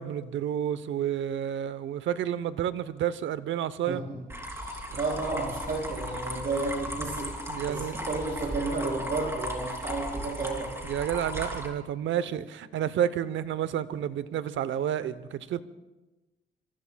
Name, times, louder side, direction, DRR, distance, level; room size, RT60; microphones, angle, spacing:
voice 1, 0.0-4.0 7.5-8.0 10.8-15.6, right 10 dB, 75° right, 0.8 m, -30 dB
sound 1, 4.3-11.7, equal, 15° right, 3.2 m, -36 dB
voice 2, 4.5-7.3 7.7-10.7, right 3 dB, 50° right, 6.4 m, -32 dB
26.0 x 24.0 x 2.3 m
cardioid pair, 90°, 20 cm